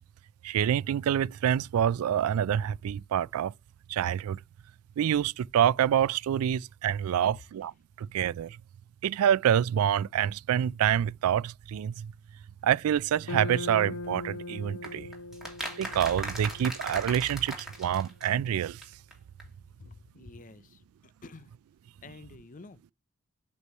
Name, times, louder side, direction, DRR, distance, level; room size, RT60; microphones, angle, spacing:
voice 1, 0.4-3.5 3.9-4.4 5.0-7.7 8.0-8.6 9.0-12.1 12.6-15.1 15.8-18.8, right 9 dB, 70° right, 0.3 m, -27 dB
sound 1, 13.2-17.6, left 2 dB, 75° left, 0.8 m, -40 dB
sound 2, 14.8-18.9 19.1-19.2 19.4-19.5, right 1 dB, ahead, 2.3 m, -39 dB
voice 2, 19.8-20.8 21.2-21.5 22.0-22.8, left 3 dB, 35° left, 0.6 m, -49 dB
8.2 x 3.1 x 5.4 m
head